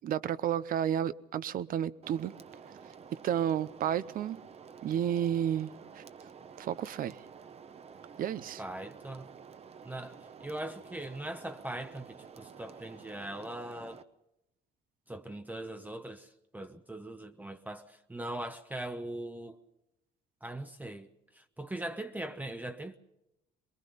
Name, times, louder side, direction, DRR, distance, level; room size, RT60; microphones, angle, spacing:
voice 1, 0.0-2.3 3.2-4.4 4.8-6.0 6.6-7.2 8.2-8.6, right 10 dB, 55° right, 0.7 m, -31 dB
sound 1, 2.0-14.0, right 6 dB, 35° right, 1.0 m, -51 dB
voice 2, 8.6-9.3 9.8-14.0 15.1-19.6 20.4-23.0, right 1 dB, 10° right, 0.8 m, -41 dB
23.0 x 21.5 x 5.4 m
cardioid pair, 110°, 17 cm